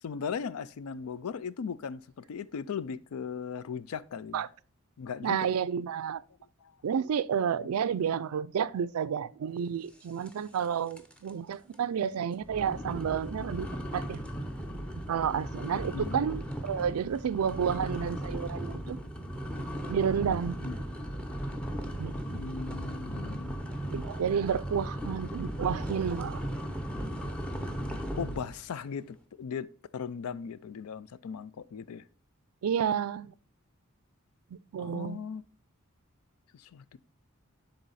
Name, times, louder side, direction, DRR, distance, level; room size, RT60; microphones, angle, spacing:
voice 1, 0.0-4.5 5.0-5.5 6.6-6.7 7.8-8.2 15.9-16.3 20.6-20.7 22.3-23.7 28.2-29.7 29.9-32.0 34.8-35.4 36.5-37.0, left 6 dB, 80° left, 0.4 m, -38 dB
voice 2, 5.2-6.2 6.8-14.2 15.1-19.0 19.9-20.6 22.0-22.4 23.9-26.4 32.6-33.3 34.5-35.2, right 7 dB, 85° right, 0.4 m, -31 dB
sound 1, 10.3-10.7 10.9-11.3 11.7-11.8 12.4-28.6, equal, 5° left, 0.7 m, -37 dB
10.0 x 3.9 x 4.1 m
head